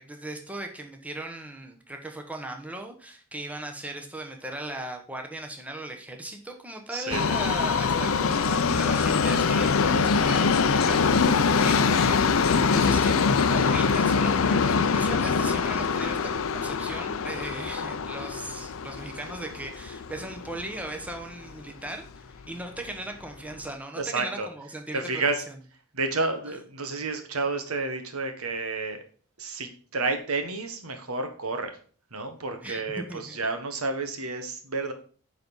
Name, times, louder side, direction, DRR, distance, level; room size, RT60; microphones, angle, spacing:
voice 1, 0.0-12.2 12.7-25.5 32.6-33.4, right 1 dB, 5° right, 3 dB, 1.0 m, -38 dB
voice 2, 6.9-7.2 24.0-24.5 24.9-25.4 25.9-29.0 29.4-31.8 32.1-34.9, right 3 dB, 85° right, 7 dB, 1.4 m, -30 dB
Subway metro underground, 7.1-21.2 21.5-21.6 22.5-22.6 22.9-23.0 23.6-23.7, left 5 dB, 70° left, 0.5 m, -24 dB
sound 1, 8.3-14.0, left 4 dB, 45° left, 0.9 m, -38 dB
9.6 x 4.1 x 5.4 m, 0.43 s
head